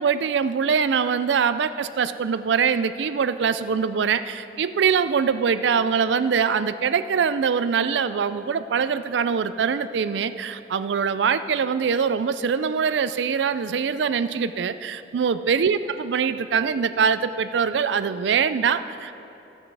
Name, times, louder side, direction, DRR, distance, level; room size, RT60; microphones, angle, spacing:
voice 1, 0.0-19.1, right 6 dB, 85° right, 13 dB, 0.4 m, -23 dB
13.0 x 9.9 x 4.7 m, 2.8 s
head